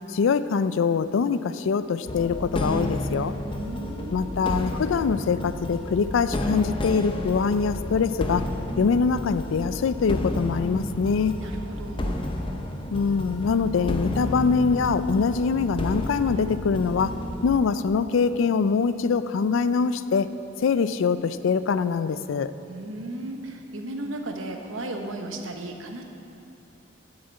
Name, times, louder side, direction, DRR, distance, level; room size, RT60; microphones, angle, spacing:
voice 1, 0.0-3.3 4.1-8.5 8.8-11.4 12.9-20.3 20.6-22.5, left 5 dB, 70° left, 13 dB, 0.4 m, -24 dB
sound 1, 2.1-17.6, left 1 dB, 25° left, 0.6 m, -31 dB
voice 2, 3.4-4.3 11.4-12.2 22.7-26.0, right 1 dB, 75° right, 4 dB, 1.0 m, -35 dB
8.0 x 6.4 x 8.2 m, 2.8 s
head